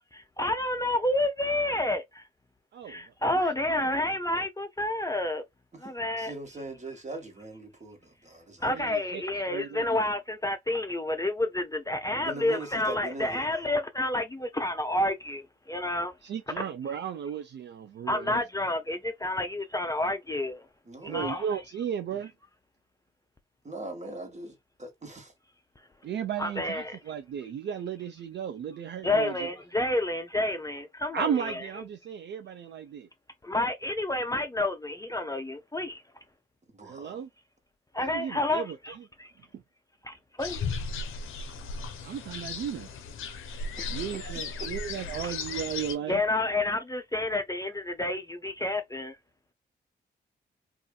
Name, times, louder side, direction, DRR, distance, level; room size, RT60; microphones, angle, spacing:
voice 1, 0.1-2.2 2.9-5.4 5.8-6.3 8.6-16.1 18.1-20.6 21.0-21.6 26.4-27.0 29.0-31.7 33.4-36.0 37.9-39.3 40.0-40.6 42.3-42.5 45.2-45.3 46.1-49.1, left 1 dB, 15° left, 0.5 m, -29 dB
voice 2, 6.2-8.7 12.1-13.5 20.8-21.3 23.6-25.3 36.7-37.2 43.8-44.7, right 2 dB, 35° right, 1.3 m, -41 dB
voice 3, 8.7-9.2 9.5-9.8 16.2-18.4 21.1-22.3 26.0-29.4 31.1-33.1 36.9-37.3 38.0-38.8 42.0-42.9 43.9-46.2, right 8 dB, 55° right, 0.4 m, -35 dB
sound 1, 40.4-46.0, left 4 dB, 75° left, 0.5 m, -36 dB
2.6 x 2.4 x 2.3 m
supercardioid pair, 50°, 21 cm